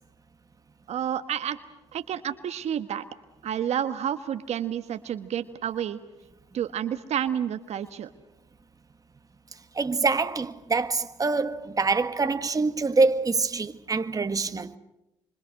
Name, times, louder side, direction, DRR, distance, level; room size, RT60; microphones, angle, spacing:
voice 1, 0.9-1.6 1.9-3.0 3.4-6.0 6.5-8.1, right 9 dB, 65° right, 1.4 m, -30 dB
voice 2, 9.7-14.7, right 3 dB, 30° right, 1.6 m, -25 dB
27.5 x 25.5 x 6.6 m
supercardioid pair, 60°, 12 cm